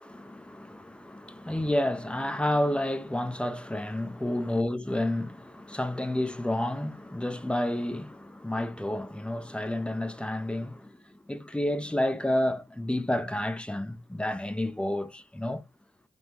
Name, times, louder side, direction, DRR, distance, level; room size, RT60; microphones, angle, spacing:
voice 1, 0.0-11.0 11.3-15.6, left 1 dB, 5° left, 0.5 m, -30 dB
5.3 x 2.1 x 3.1 m
wide cardioid pair, 110°, 15 cm